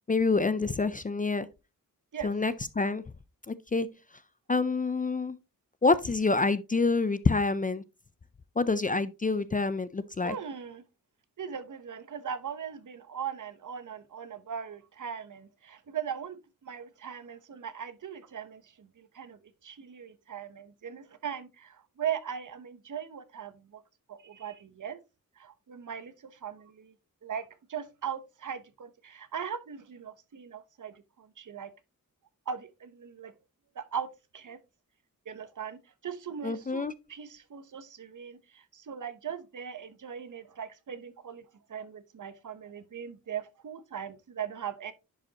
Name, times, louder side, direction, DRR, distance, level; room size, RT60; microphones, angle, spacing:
voice 1, 0.1-1.5 2.2-3.0 3.5-3.9 4.5-5.4 5.8-7.8 8.6-10.4 36.4-36.9, left 3 dB, 25° left, 0.4 m, -27 dB
voice 2, 10.2-10.8 11.4-23.8 24.1-25.0 25.4-26.9 27.2-27.4 27.7-31.7 32.5-33.3 33.7-34.1 34.3-34.6 35.3-41.4 41.7-44.9, right 8 dB, 60° right, 0.9 m, -39 dB
10.5 x 5.0 x 2.8 m
wide cardioid pair, 135°, 34 cm